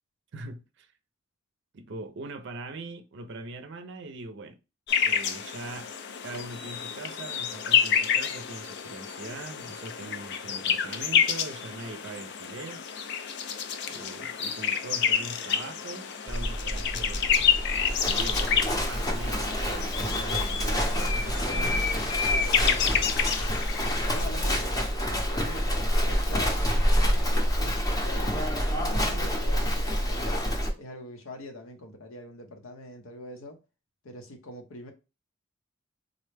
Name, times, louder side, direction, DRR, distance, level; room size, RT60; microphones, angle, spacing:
voice 1, 0.3-0.9 1.7-4.6 5.0-5.9 6.2-12.8 13.9-17.6 17.9-21.8, right 2 dB, 60° right, 0.5 m, -41 dB
sound 1, 4.9-24.2, left 7 dB, 55° left, 0.4 m, -29 dB
Livestock farm animals working animals, 16.3-30.7, equal, 20° left, 0.7 m, -27 dB
voice 2, 22.2-23.2 24.1-26.6 27.1-33.6 34.0-34.9, left 1 dB, 85° left, 0.9 m, -43 dB
3.8 x 2.1 x 3.3 m
head